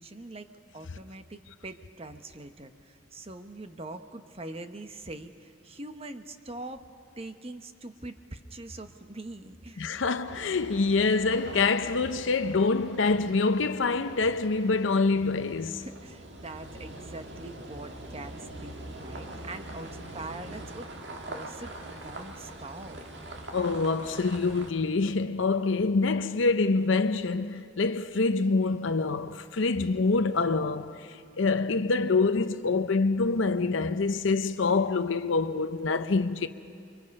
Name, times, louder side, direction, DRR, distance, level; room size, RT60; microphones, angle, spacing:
voice 1, 0.0-6.9 7.2-10.1 15.8-18.3 18.6-23.0, right 2 dB, 30° right, 1.0 m, -43 dB
voice 2, 9.8-15.8 23.5-31.1 31.4-36.5, left 3 dB, 80° left, 0.6 m, -26 dB
sound 1, 10.3-24.7, right 1 dB, 65° right, 1.9 m, -43 dB
29.0 x 24.0 x 5.4 m
head